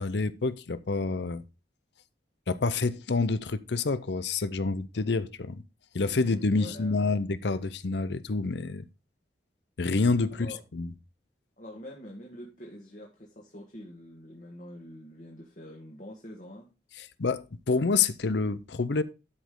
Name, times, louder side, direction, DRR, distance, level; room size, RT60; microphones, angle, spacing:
voice 1, 0.0-1.4 2.5-5.6 5.9-8.9 9.8-10.9 17.0-19.0, left 3 dB, 75° left, 0.6 m, -28 dB
voice 2, 6.0-7.1 10.4-10.6 11.6-16.7, left 1 dB, 45° left, 1.9 m, -45 dB
12.5 x 5.2 x 3.7 m
head